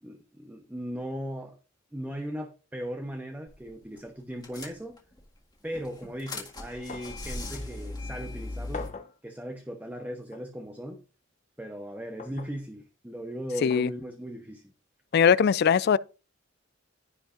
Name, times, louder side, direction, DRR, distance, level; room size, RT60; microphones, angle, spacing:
voice 1, 0.0-1.6 1.9-5.0 5.6-8.9 9.2-11.0 11.6-14.6, equal, 10° right, 0.9 m, -38 dB
sound 1, 3.5-3.7 4.0-4.1 4.4-5.2 5.7-8.9, left 2 dB, 20° left, 1.7 m, -38 dB
sound 2, 6.9-7.2 7.6-7.7 8.7-9.2 10.3-10.5 12.2-12.6 13.7-13.9 15.1-15.3, left 4 dB, 40° left, 0.9 m, -41 dB
voice 2, 15.1-16.0, left 7 dB, 55° left, 0.3 m, -20 dB
15.0 x 5.1 x 2.5 m
head